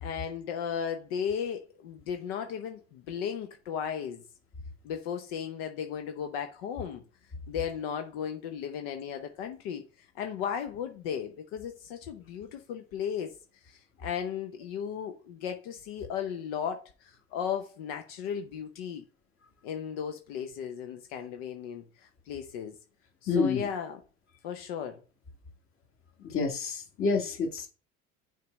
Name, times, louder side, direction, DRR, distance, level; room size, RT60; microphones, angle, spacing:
voice 1, 0.0-4.2 4.8-7.0 7.5-9.8 10.1-13.3 13.6-19.0 19.6-22.8 23.2-24.0 24.4-25.0, left 8 dB, 90° left, 0.8 m, -35 dB
voice 2, 23.3-23.7 26.2-27.7, left 4 dB, 50° left, 1.8 m, -28 dB
6.6 x 3.4 x 5.1 m
supercardioid pair, 95°, 29 cm